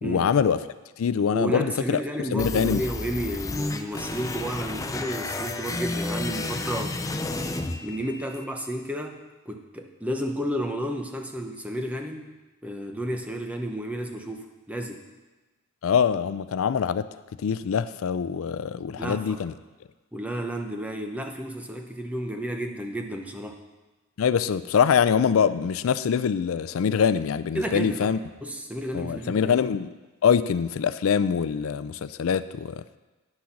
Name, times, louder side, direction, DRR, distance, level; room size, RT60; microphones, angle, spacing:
voice 1, 0.0-0.6 1.0-2.0 2.3-2.8 15.8-17.1 17.4-19.5 24.2-28.2 28.9-29.9 30.2-32.8, left 7 dB, 85° left, 14 dB, 0.4 m, -24 dB
voice 2, 1.3-7.1 7.8-12.3 12.6-15.0 19.0-19.4 20.1-23.6 27.5-28.1 28.4-29.6, equal, 5° right, 3 dB, 0.8 m, -32 dB
sound 1, 2.4-8.4, left 2 dB, 15° left, 0.4 m, -32 dB
9.7 x 6.3 x 5.9 m, 1.2 s
head